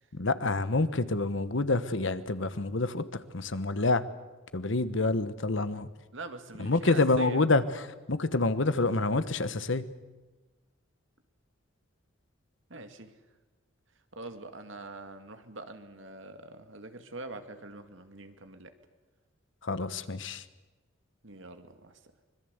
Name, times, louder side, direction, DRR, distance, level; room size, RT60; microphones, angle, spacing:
voice 1, 0.1-4.0 4.5-5.9 6.6-9.9 19.6-20.4, left 3 dB, 65° left, 13 dB, 1.2 m, -27 dB
voice 2, 6.1-7.4 12.7-13.1 14.1-18.7 21.2-22.0, right 2 dB, 70° right, 8 dB, 2.1 m, -44 dB
25.0 x 22.0 x 8.1 m, 1.2 s
head